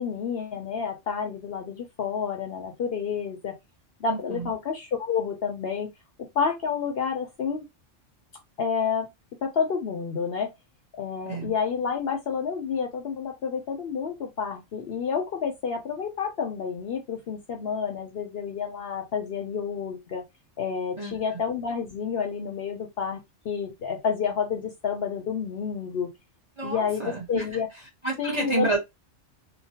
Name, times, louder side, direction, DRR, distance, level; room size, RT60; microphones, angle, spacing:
voice 1, 0.0-3.6 4.0-5.9 6.3-7.6 8.6-9.1 9.4-10.5 11.0-20.2 20.6-26.1 26.6-27.7 28.2-28.7, left 6 dB, 60° left, 0.7 m, -29 dB
voice 2, 4.1-4.5 11.3-11.5 21.0-21.2 26.6-27.4 28.0-28.8, right 2 dB, 25° right, 0.8 m, -29 dB
3.0 x 2.1 x 2.8 m
omnidirectional pair, 1.3 m